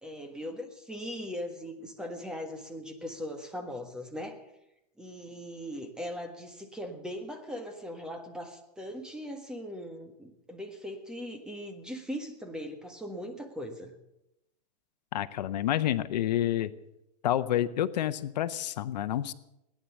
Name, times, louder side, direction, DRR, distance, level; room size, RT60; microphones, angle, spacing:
voice 1, 0.0-4.4 5.0-13.9, equal, 5° right, 5 dB, 1.5 m, -39 dB
voice 2, 15.1-16.7 17.2-19.3, left 12 dB, 85° left, 14 dB, 0.8 m, -29 dB
18.0 x 10.0 x 7.2 m, 0.88 s
supercardioid pair, 155°, 21 cm